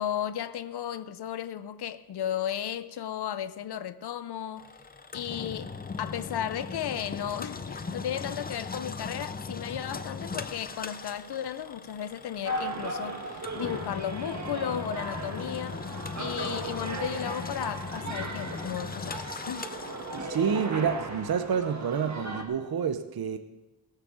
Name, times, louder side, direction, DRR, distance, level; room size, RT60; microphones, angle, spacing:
voice 1, 0.0-4.8 5.1-15.8 16.2-19.7, left 10 dB, 90° left, 0.6 m, -34 dB
Engine, 4.6-20.7, left 4 dB, 25° left, 0.5 m, -39 dB
sound 1, 12.5-22.4, right 2 dB, 45° right, 1.6 m, -37 dB
voice 2, 20.2-23.4, right 7 dB, 70° right, 0.7 m, -28 dB
18.0 x 6.7 x 6.3 m
wide cardioid pair, 160°, 38 cm